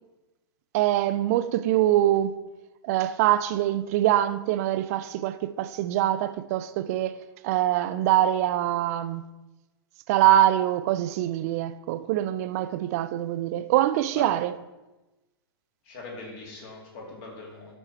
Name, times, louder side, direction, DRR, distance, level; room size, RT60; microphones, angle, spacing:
voice 1, 0.7-2.3 2.8-7.2 7.4-9.3 10.1-14.5, right 13 dB, 40° right, 0.4 m, -24 dB
voice 2, 15.8-17.8, left 3 dB, 40° left, 2.6 m, -41 dB
12.0 x 4.5 x 4.3 m
figure-of-eight pair, 110°, 13 cm